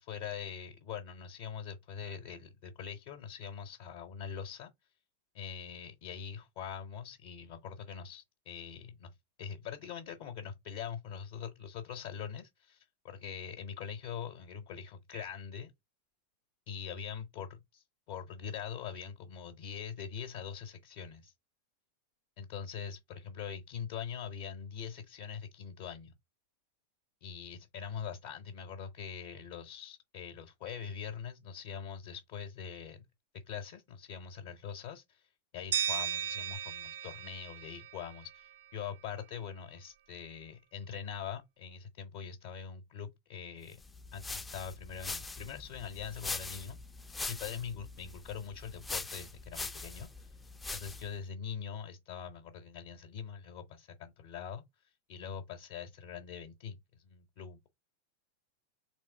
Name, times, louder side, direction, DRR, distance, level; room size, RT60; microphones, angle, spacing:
voice 1, 0.0-4.7 5.3-9.1 9.4-15.7 16.7-21.3 22.4-26.1 27.2-33.0 33.5-35.3 35.5-43.8 44.1-46.8 47.3-50.3 50.7-54.6 55.1-57.7, left 7 dB, 50° left, 0.6 m, -43 dB
sound 1, 35.7-38.6, right 9 dB, 60° right, 0.4 m, -36 dB
sound 2, 43.8-51.2, left 3 dB, 10° left, 0.3 m, -42 dB
3.6 x 3.0 x 4.2 m
figure-of-eight pair, 90°, 0 cm